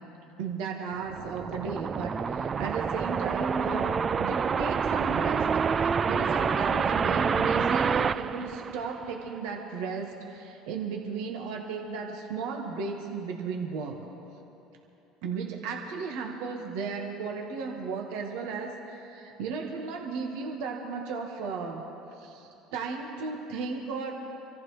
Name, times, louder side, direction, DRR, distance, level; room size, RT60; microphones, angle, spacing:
voice 1, 0.4-5.5 5.8-14.0 15.2-21.8 22.2-24.1, right 5 dB, 70° right, 1 dB, 1.5 m, -35 dB
sound 1, 0.9-9.3, right 6 dB, 35° right, 0.4 m, -27 dB
25.5 x 14.5 x 3.2 m, 3.0 s
hypercardioid pair, 75°, 0 cm